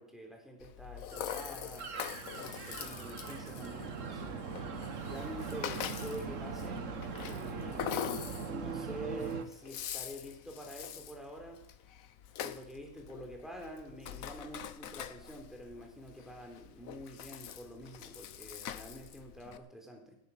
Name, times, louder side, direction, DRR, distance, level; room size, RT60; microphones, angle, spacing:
voice 1, 0.0-1.9 2.2-4.4 5.1-7.0 7.3-7.9 8.5-11.6 12.4-20.1, equal, ahead, 1 dB, 3.7 m, -47 dB
Rattle (instrument), 0.6-19.6, left 10 dB, 80° left, 1.2 m, -44 dB
sound 1, 1.1-9.4, right 5 dB, 65° right, 1.5 m, -41 dB
19.0 x 10.5 x 5.6 m, 0.80 s
omnidirectional pair, 1.4 m